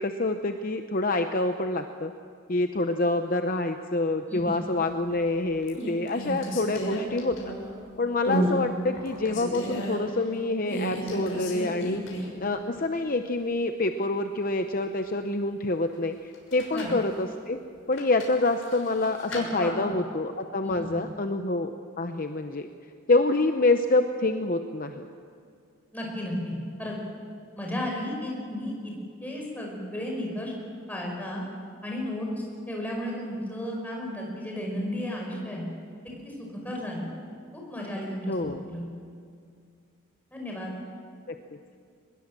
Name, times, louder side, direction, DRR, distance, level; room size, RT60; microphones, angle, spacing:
voice 1, 0.0-2.1 2.5-7.5 8.0-12.0 12.4-17.6 17.9-22.7 23.1-25.1 38.3-38.6 41.3-41.4, left 2 dB, 40° left, 6 dB, 0.8 m, -27 dB
sound 1, 4.9-5.3 5.7-7.8 8.2-8.6 8.9-10.0 10.6-12.4 12.7-12.8 16.3-17.0 17.9-19.4, equal, 65° left, 6.4 m, -32 dB
voice 2, 19.3-19.7 20.6-21.0 25.9-26.5 26.8-27.0 27.5-28.9 29.2-30.5 30.9-31.4 31.8-35.6 36.2-37.1 37.5-38.9 40.3-40.7, left 1 dB, 10° left, -1 dB, 5.5 m, -33 dB
23.0 x 21.0 x 7.5 m, 2.3 s
head